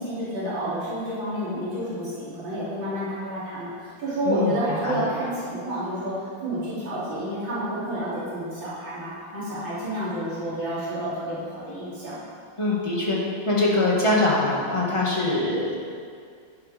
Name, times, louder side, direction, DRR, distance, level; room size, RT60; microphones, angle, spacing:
voice 1, 0.0-6.1 6.4-12.2, right 1 dB, 80° right, -10 dB, 3.9 m, -30 dB
voice 2, 4.2-5.1 12.6-13.2 13.5-15.8, left 2 dB, 15° left, -5 dB, 1.8 m, -23 dB
11.5 x 10.5 x 3.5 m, 2.2 s
omnidirectional pair, 2.1 m